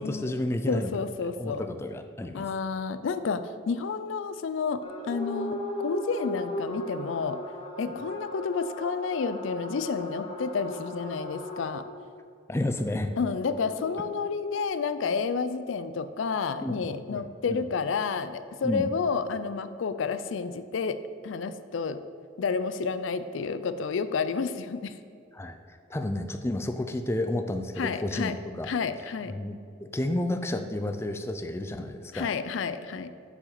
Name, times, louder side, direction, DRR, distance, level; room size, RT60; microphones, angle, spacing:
voice 1, 0.0-0.9 1.4-2.5 7.9-8.0 12.5-13.1 16.6-16.8 17.1-17.2 17.5-17.6 18.6-18.9 25.3-28.7 29.3-32.3, left 1 dB, 15° left, 7 dB, 0.3 m, -31 dB
voice 2, 0.7-1.6 2.3-7.4 7.8-11.8 13.2-21.0 21.2-22.0 22.4-25.0 27.8-28.3 28.6-29.3 32.1-33.1, left 5 dB, 80° left, 12 dB, 0.4 m, -30 dB
sound 1, 4.8-11.8 13.5-14.6, left 1 dB, 30° left, 1.2 m, -37 dB
7.0 x 4.9 x 6.6 m, 2.3 s
head